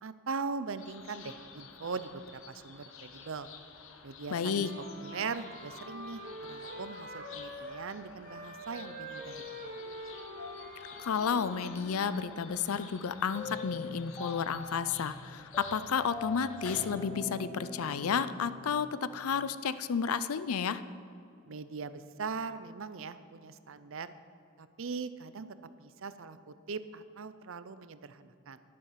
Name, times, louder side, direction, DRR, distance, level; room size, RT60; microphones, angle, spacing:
voice 1, 0.0-3.5 4.0-4.7 5.0-6.2 6.5-9.9 21.5-24.1 24.6-25.5 25.8-28.6, right 5 dB, 65° right, 13 dB, 0.6 m, -40 dB
sound 1, 0.8-16.9, left 5 dB, 65° left, 1.1 m, -51 dB
voice 2, 4.3-4.7 11.0-20.8, left 6 dB, 85° left, 14 dB, 0.5 m, -32 dB
Wind instrument woodwind instrument, 4.3-7.9 8.2-12.1, equal, 40° right, 1.5 m, -45 dB
sound 2, 13.3-19.5, left 3 dB, 20° left, 2.1 m, -43 dB
11.5 x 11.0 x 5.8 m, 2.5 s
head